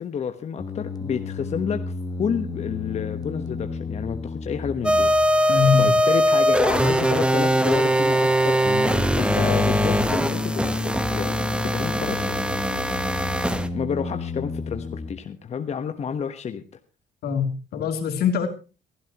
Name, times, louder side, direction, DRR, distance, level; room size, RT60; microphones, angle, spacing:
voice 1, 0.0-1.8 2.2-8.6 9.2-11.4 11.7-12.4 13.7-16.6, left 7 dB, 40° left, 7 dB, 1.2 m, -30 dB
sound 1, 0.6-15.1, left 3 dB, 25° left, 1.5 m, -32 dB
sound 2, 4.8-13.7, equal, 5° right, 1.1 m, -21 dB
voice 2, 5.5-6.0 17.2-18.5, left 7 dB, 70° left, 6 dB, 3.0 m, -23 dB
23.5 x 12.0 x 3.0 m, 0.31 s
cardioid pair, 110°, 17 cm